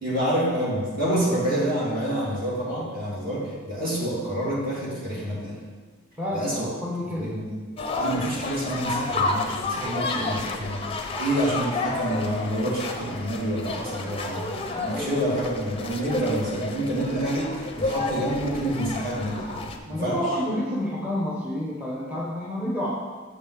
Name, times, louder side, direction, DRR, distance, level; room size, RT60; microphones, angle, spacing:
voice 1, 0.0-5.6 6.3-6.7 7.2-7.6 8.0-10.9 11.2-19.5 19.9-20.2, right 1 dB, 45° right, -6 dB, 2.3 m, -27 dB
voice 2, 6.2-7.3 14.7-15.2 19.9-22.9, left 1 dB, 5° right, -5 dB, 0.9 m, -29 dB
sound 1, 7.8-19.8, left 3 dB, 25° left, 0.5 m, -31 dB
6.9 x 5.5 x 4.6 m, 1.4 s
head